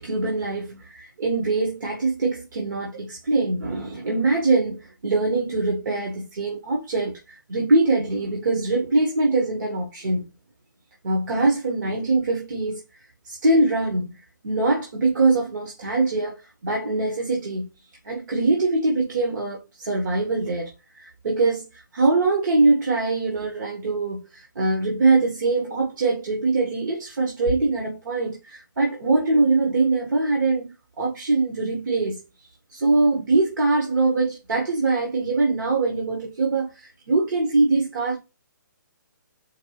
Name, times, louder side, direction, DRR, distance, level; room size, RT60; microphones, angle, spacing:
voice 1, 0.0-10.3 11.0-12.8 13.2-17.7 18.0-20.7 21.0-32.2 32.7-38.2, right 3 dB, 70° right, 1.3 m, -23 dB
4.5 x 2.4 x 3.1 m
hypercardioid pair, 150°, 11 cm